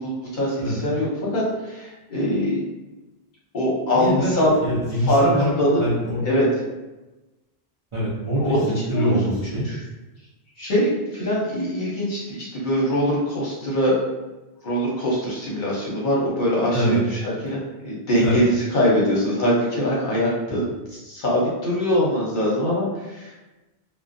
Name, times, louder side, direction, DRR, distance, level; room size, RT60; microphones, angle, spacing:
voice 1, 0.0-2.6 3.5-4.6 5.1-5.8 6.2-6.4 8.4-9.2 9.6-9.8 10.6-14.0 14.6-20.6 21.0-23.3, equal, 55° left, -5 dB, 0.8 m, -22 dB
voice 2, 3.9-4.3 4.6-5.5 5.8-6.2 7.9-9.7 16.7-17.0 18.2-18.4, equal, 40° right, -9 dB, 0.5 m, -24 dB
2.4 x 2.1 x 2.5 m, 1.1 s
omnidirectional pair, 1.1 m